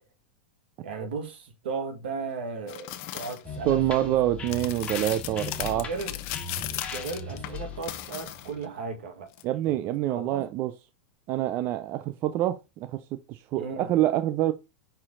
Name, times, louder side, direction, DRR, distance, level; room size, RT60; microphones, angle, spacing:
voice 1, 0.8-4.2 5.6-6.2 6.6-9.3 9.6-9.8 10.1-10.5 13.6-13.9, right 4 dB, 75° right, 1.8 m, -36 dB
sound 1, 2.7-3.4 4.5-8.6 9.3-9.4, left 14 dB, 45° left, 0.7 m, -37 dB
sound 2, 3.4-9.1, left 4 dB, 20° left, 1.6 m, -39 dB
voice 2, 3.7-5.9 9.4-10.7 11.3-14.5, right 14 dB, 40° right, 0.4 m, -26 dB
5.6 x 4.5 x 3.8 m
hypercardioid pair, 125°, 6 cm